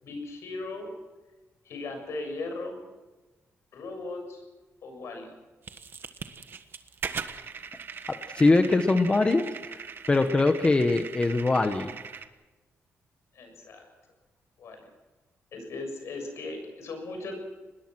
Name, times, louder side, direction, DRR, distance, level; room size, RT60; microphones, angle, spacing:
voice 1, 0.0-0.9 1.7-2.8 3.7-4.5 4.8-5.3 13.3-13.9 14.6-14.9 15.5-17.3, left 2 dB, 75° left, 4 dB, 6.8 m, -37 dB
sound 1, 5.6-12.3, right 6 dB, 50° right, 1.3 m, -40 dB
voice 2, 8.1-9.4 10.1-11.9, left 3 dB, 20° left, 7 dB, 1.2 m, -22 dB
25.5 x 20.5 x 6.2 m, 1.2 s
cardioid pair, 120°, 5 cm